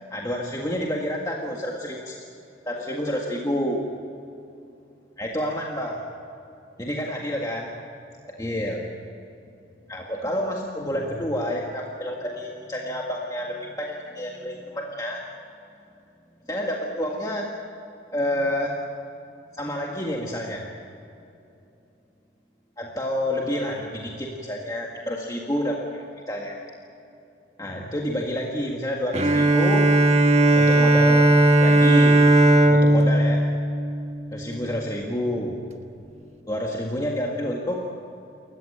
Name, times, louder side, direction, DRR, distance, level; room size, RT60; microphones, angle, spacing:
voice 1, 0.1-2.2 2.7-3.9 5.2-6.0 6.8-7.7 8.4-8.9 9.9-15.2 16.5-17.5 18.1-18.7 19.5-20.6 22.8-26.6 27.6-29.9 30.5-31.3 31.6-32.3 32.7-33.4 34.3-35.6 36.5-37.8, equal, 20° left, -1 dB, 1.8 m, -29 dB
Bowed string instrument, 29.1-34.6, right 1 dB, 35° right, 1.5 m, -17 dB
28.0 x 15.0 x 8.8 m, 2.8 s
head